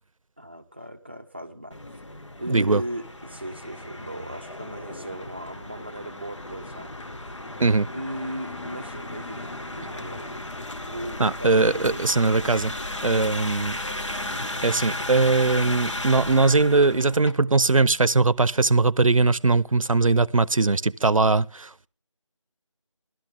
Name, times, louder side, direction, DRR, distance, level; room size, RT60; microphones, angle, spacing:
voice 1, 0.4-2.0 2.4-6.9 7.9-10.3 10.9-12.1 13.7-13.8, right 1 dB, 20° right, 0.7 m, -37 dB
sound 1, 1.7-17.3, left 1 dB, 65° left, 1.9 m, -35 dB
voice 2, 2.5-2.8 7.6-7.9 11.2-12.7 13.0-13.8 14.6-21.9, right 3 dB, 90° right, 0.7 m, -20 dB
16.5 x 12.5 x 3.6 m
figure-of-eight pair, 175°, 17 cm